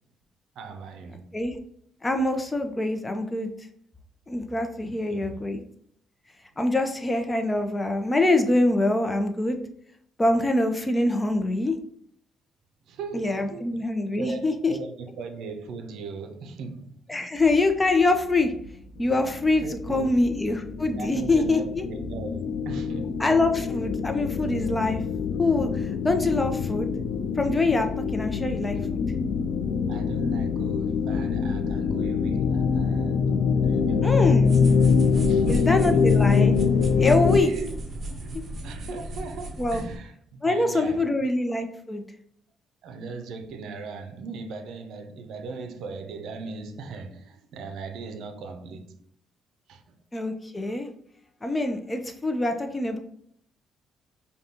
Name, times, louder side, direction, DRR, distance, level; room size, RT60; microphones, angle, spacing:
voice 1, 0.6-1.3 4.8-5.5 12.9-13.8 14.2-17.3 19.6-20.1 21.0-23.2 29.9-34.4 35.2-36.1 37.3-37.8 38.2-38.3 38.6-41.1 42.8-49.0 49.7-49.8, right 4 dB, 75° right, 0.5 m, -38 dB
voice 2, 2.0-3.5 4.3-5.6 6.6-9.6 10.2-11.7 13.1-14.7 17.1-18.5 19.0-19.6 19.9-21.8 23.2-25.0 25.4-26.9 27.4-27.9 28.1-29.0 34.0-34.5 35.5-36.5 37.0-37.5 39.6-39.8 40.4-42.0 50.1-50.9 51.4-53.0, left 2 dB, 20° left, 0.6 m, -24 dB
sound 1, 17.3-35.0, right 1 dB, 15° right, 0.8 m, -44 dB
sound 2, 19.1-37.4, left 6 dB, 75° left, 0.3 m, -24 dB
sound 3, 34.4-40.0, right 1 dB, 45° right, 0.8 m, -35 dB
5.0 x 2.3 x 2.8 m
cardioid pair, 80°, 0 cm